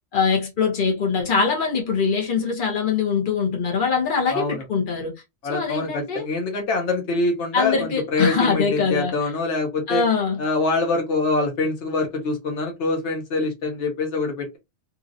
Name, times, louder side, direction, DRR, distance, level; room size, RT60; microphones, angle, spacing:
voice 1, 0.1-5.1 5.5-6.3 7.5-9.2 9.9-10.5, left 5 dB, 50° left, 1.2 m, -23 dB
voice 2, 4.3-4.6 5.4-10.0 10.4-14.6, left 3 dB, 85° left, 1.2 m, -25 dB
2.8 x 2.7 x 2.5 m
omnidirectional pair, 1.2 m